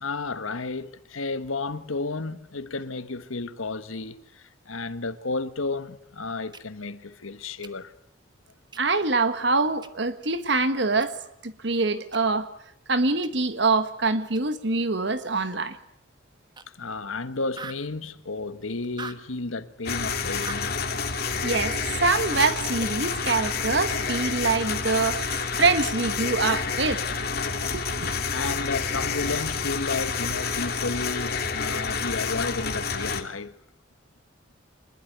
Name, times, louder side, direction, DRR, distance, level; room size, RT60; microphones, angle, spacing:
voice 1, 0.0-7.9 16.7-20.8 28.3-33.6, left 3 dB, 90° left, 1.4 m, -32 dB
sound 1, 6.5-6.6 7.6-7.7 8.7-8.8 9.8-9.9 11.0-11.1 12.1-12.2 13.2-13.3 14.3-14.4 16.6-16.7 17.0-17.1 17.4-17.9 18.8-19.2 20.4-20.6 22.8-23.1, right 4 dB, 20° right, 1.2 m, -40 dB
voice 2, 8.8-11.2 11.4-12.5 12.9-15.8 21.4-27.2 27.7-28.1, right 3 dB, 60° right, 1.5 m, -25 dB
sound 2, 19.9-33.2, left 5 dB, 50° left, 2.4 m, -29 dB
25.0 x 21.0 x 8.1 m
head